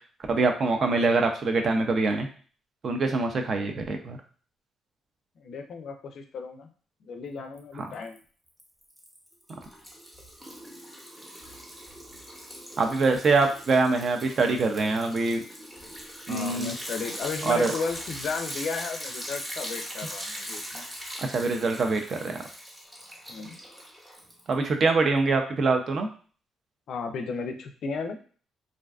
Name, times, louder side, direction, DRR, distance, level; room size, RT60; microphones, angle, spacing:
voice 1, 0.3-2.3 2.8-4.2 12.8-15.4 16.3-16.7 17.4-17.7 21.2-22.4 24.5-26.1, right 3 dB, 50° right, 5 dB, 0.4 m, -24 dB
voice 2, 5.4-6.7 7.0-8.2 16.3-20.8 23.3-23.6 26.9-28.2, left 5 dB, 65° left, 5 dB, 0.4 m, -34 dB
Liquid, 7.6-8.2 8.5-24.7, equal, 10° right, 0.7 m, -40 dB
2.5 x 2.2 x 2.3 m, 0.41 s
cardioid pair, 90°, 0 cm